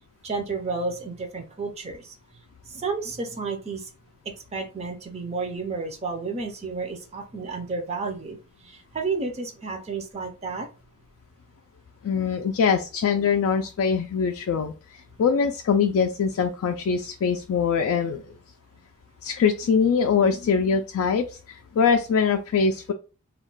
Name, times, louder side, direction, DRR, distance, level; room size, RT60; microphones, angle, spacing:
voice 1, 0.2-2.1 2.7-3.9 4.3-10.7, right 4 dB, 30° right, 4 dB, 0.4 m, -31 dB
voice 2, 12.0-18.2 19.2-22.9, left 6 dB, 75° left, 5 dB, 0.3 m, -23 dB
2.3 x 2.1 x 3.8 m, 0.33 s
head